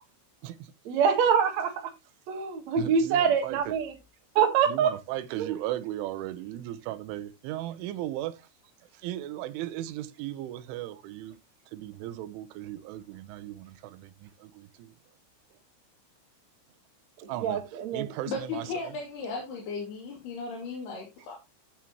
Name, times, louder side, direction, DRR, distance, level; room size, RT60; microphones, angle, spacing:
voice 1, 0.9-1.9 2.3-3.9 4.4-4.9 5.4-5.5 17.2-18.1, right 7 dB, 60° right, 1.8 m, -25 dB
voice 2, 2.8-3.6 4.7-8.4 9.0-11.4 11.7-14.9 17.3-17.6 17.9-18.7, right 14 dB, 85° right, 3.2 m, -36 dB
voice 3, 18.3-21.4, left 4 dB, 60° left, 4.4 m, -36 dB
14.0 x 7.3 x 3.0 m
omnidirectional pair, 5.6 m